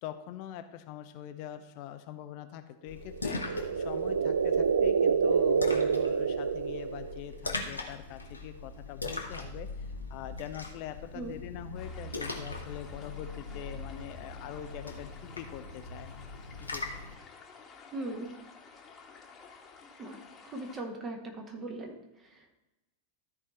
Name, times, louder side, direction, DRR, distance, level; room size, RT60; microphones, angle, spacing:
voice 1, 0.0-3.4 3.8-16.2 16.6-16.9, left 11 dB, 45° left, 9 dB, 0.6 m, -43 dB
Splash splatter, 2.9-17.1, left 3 dB, 80° left, 1.1 m, -41 dB
sound 1, 3.1-7.3, right 6 dB, 70° right, 0.3 m, -27 dB
sound 2, 11.7-20.8, left 5 dB, 25° left, 1.5 m, -53 dB
voice 2, 17.9-18.4 20.0-22.0 22.3-22.5, right 2 dB, 25° right, 2 dB, 1.6 m, -39 dB
13.0 x 4.9 x 4.4 m, 1.0 s
figure-of-eight pair, 90°, 0 cm